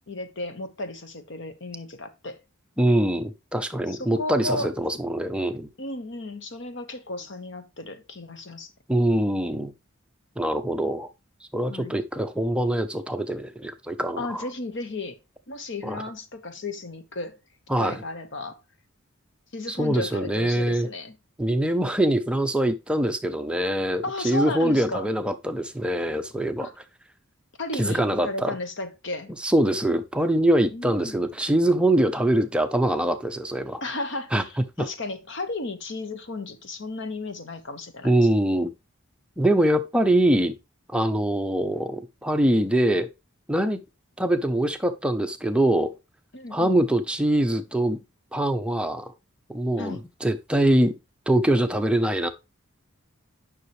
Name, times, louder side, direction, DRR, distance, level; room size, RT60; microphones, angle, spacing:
voice 1, 0.1-2.4 3.9-4.7 5.8-8.7 11.7-11.9 14.2-15.2 15.5-17.4 17.8-18.6 19.5-21.2 24.0-25.1 26.6-26.7 27.6-29.3 30.7-31.2 33.8-38.1 46.3-46.8 49.8-50.0, left 2 dB, 60° left, 1.2 m, -34 dB
voice 2, 2.8-5.7 8.9-9.7 10.4-11.1 11.5-14.5 15.8-16.0 17.7-18.0 19.7-20.9 21.4-26.7 27.8-28.6 29.4-33.8 34.3-34.4 34.8-34.9 38.0-38.7 39.4-40.6 40.9-43.1 43.5-43.8 44.2-45.9 46.5-48.0 48.3-49.1 49.5-50.9 51.3-52.3, right 1 dB, 5° right, 0.6 m, -23 dB
9.7 x 5.8 x 3.1 m
head